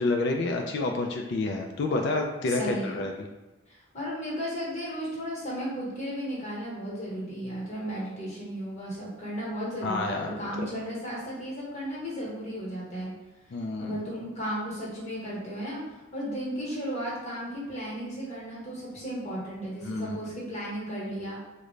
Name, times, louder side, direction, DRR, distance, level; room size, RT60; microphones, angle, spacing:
voice 1, 0.0-3.1 9.8-10.3 10.6-10.7 13.5-14.0 19.8-20.2, left 2 dB, 55° left, 3 dB, 0.3 m, -28 dB
voice 2, 2.4-3.0 3.9-13.1 13.8-15.8 16.1-21.4, equal, 30° left, -5 dB, 1.1 m, -34 dB
3.7 x 2.1 x 3.1 m, 1.1 s
head